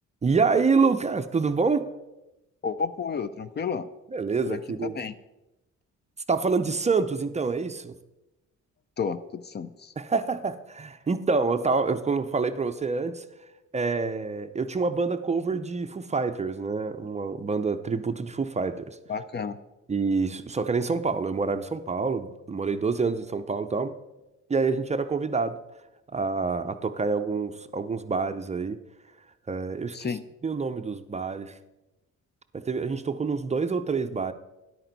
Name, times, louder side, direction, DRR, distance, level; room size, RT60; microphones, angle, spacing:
voice 1, 0.2-1.9 4.1-4.9 6.3-7.9 10.0-13.3 13.7-19.0 19.9-23.9 24.5-25.6 26.1-28.8 29.5-30.1 30.4-31.6 32.5-34.3, right 4 dB, 25° right, 9 dB, 0.5 m, -27 dB
voice 2, 2.6-3.9 4.5-5.1 9.0-9.9 19.1-19.6 29.9-30.2, left 6 dB, 35° left, 13 dB, 0.5 m, -31 dB
10.0 x 8.7 x 4.0 m, 0.99 s
cardioid pair, 90°, 30 cm